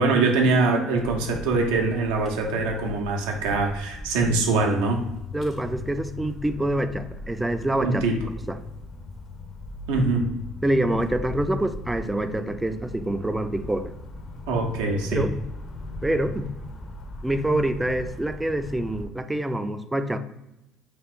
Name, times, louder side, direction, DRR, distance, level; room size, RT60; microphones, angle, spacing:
voice 1, 0.0-5.0 7.8-8.2 9.9-10.2 14.5-15.3, right 3 dB, 80° right, 2 dB, 0.5 m, -23 dB
sound 1, 1.0-19.1, left 2 dB, 45° left, 0.6 m, -39 dB
voice 2, 5.3-8.0 8.5-8.6 10.6-13.9 15.1-15.3 16.0-16.5 17.2-20.2, right 1 dB, 10° right, 10 dB, 0.3 m, -26 dB
2.9 x 2.4 x 3.4 m, 0.91 s
hypercardioid pair, 65°, 0 cm